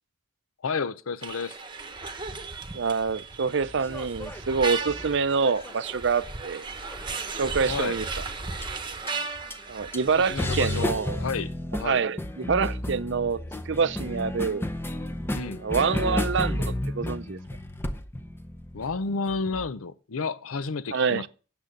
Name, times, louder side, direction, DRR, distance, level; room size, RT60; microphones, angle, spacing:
voice 1, 0.6-1.6 7.7-8.0 10.3-10.9 11.2-11.5 11.8-12.0 15.3-15.6 18.7-21.3, left 4 dB, 85° left, 0.6 m, -31 dB
sound 1, 1.2-10.9, right 4 dB, 20° right, 1.1 m, -36 dB
voice 2, 2.7-6.7 7.3-8.1 9.7-11.3 11.8-13.4 13.7-14.7 15.6-17.4 20.9-21.3, right 5 dB, 55° right, 0.5 m, -26 dB
sound 2, 3.4-6.0 6.9-7.4 8.6-8.7 9.1-9.2 9.5-9.6 9.9-19.7, left 1 dB, 10° left, 0.6 m, -32 dB
9.0 x 7.1 x 6.4 m
head